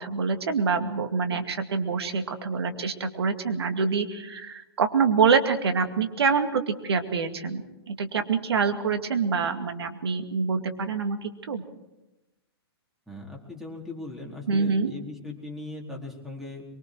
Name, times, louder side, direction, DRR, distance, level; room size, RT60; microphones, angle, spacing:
voice 1, 0.0-11.6 14.5-14.9, right 5 dB, 70° right, 7 dB, 2.3 m, -26 dB
voice 2, 13.1-16.6, left 2 dB, ahead, -1 dB, 4.3 m, -39 dB
24.0 x 24.0 x 4.8 m, 0.97 s
hypercardioid pair, 115°, 14 cm